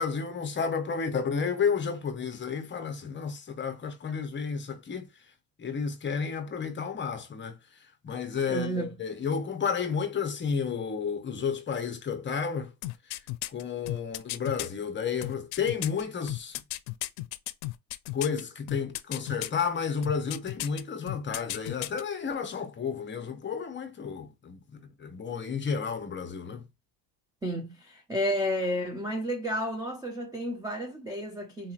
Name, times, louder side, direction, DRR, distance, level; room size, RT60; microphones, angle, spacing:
voice 1, 0.0-5.1 5.6-7.6 8.0-12.7 13.5-16.6 18.1-26.6, left 6 dB, 25° left, 0.6 m, -31 dB
voice 2, 8.5-8.9 27.4-31.7, equal, 10° right, 0.3 m, -31 dB
sound 1, 12.8-14.7 15.2-18.4 18.7-19.6 20.0-20.8 21.1-22.0 22.3-22.4, left 19 dB, 75° left, 0.5 m, -34 dB
3.9 x 2.8 x 2.4 m
cardioid pair, 125°, 49 cm